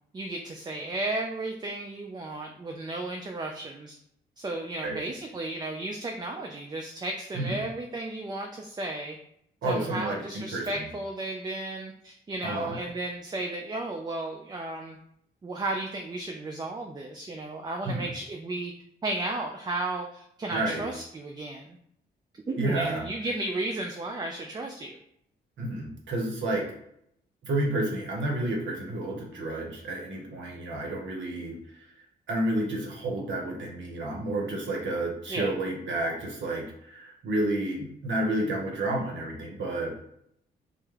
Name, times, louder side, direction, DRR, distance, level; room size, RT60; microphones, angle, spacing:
voice 1, 0.1-4.0 4.4-9.2 9.6-15.0 15.4-18.7 19.0-21.8 22.5-25.0 35.3-35.5, right 2 dB, 20° right, 2 dB, 0.3 m, -34 dB
voice 2, 9.6-10.8 12.4-12.8 17.8-18.1 20.5-20.9 22.6-23.0 25.6-26.7 27.4-31.6 32.3-39.9, right 1 dB, 70° right, 0 dB, 0.7 m, -30 dB
2.2 x 2.0 x 3.1 m, 0.73 s
supercardioid pair, 50°, 20 cm